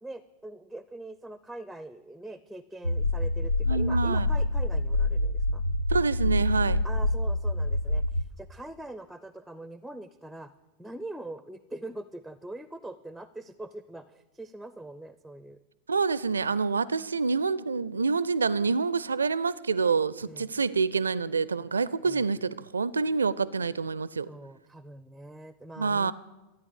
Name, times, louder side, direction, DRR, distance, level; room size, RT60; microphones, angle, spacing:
voice 1, 0.0-5.6 6.8-10.5 10.8-15.6 20.3-20.5 22.0-22.3 24.3-26.1, right 2 dB, ahead, 15 dB, 0.5 m, -43 dB
sound 1, 2.8-8.2, left 1 dB, 90° left, 0.5 m, -26 dB
voice 2, 3.7-4.3 5.9-6.8 15.9-24.3 25.8-26.1, right 4 dB, 75° right, 20 dB, 0.4 m, -27 dB
13.0 x 9.1 x 7.9 m, 1.1 s
figure-of-eight pair, 90°, 0 cm